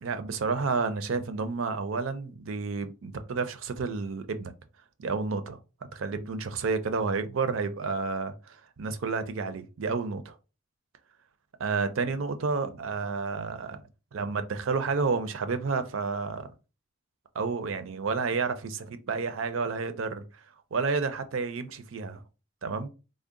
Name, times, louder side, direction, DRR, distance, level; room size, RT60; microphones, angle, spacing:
voice 1, 0.0-4.5 5.0-5.6 5.9-10.3 11.6-13.8 14.1-16.5 17.3-20.2 20.7-22.2 22.6-22.9, right 4 dB, 75° right, 0.5 m, -30 dB
3.7 x 2.0 x 3.6 m
head